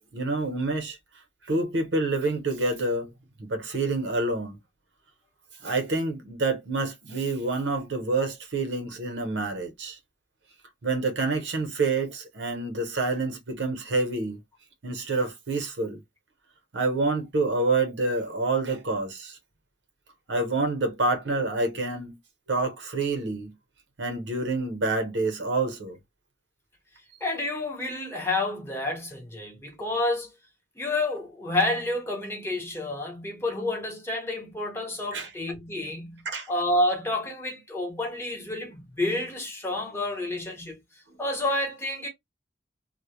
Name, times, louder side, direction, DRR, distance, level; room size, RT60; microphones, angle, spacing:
voice 1, 0.1-1.0 1.5-3.1 3.4-4.6 5.6-10.0 10.8-14.4 14.8-16.0 16.7-19.4 20.3-22.2 22.5-23.5 24.0-26.0 35.1-35.3 36.3-36.5, right 3 dB, 80° right, 0.8 m, -27 dB
voice 2, 27.2-30.3 30.8-40.8 41.2-42.1, left 2 dB, 15° left, 0.8 m, -29 dB
2.1 x 2.1 x 2.9 m
head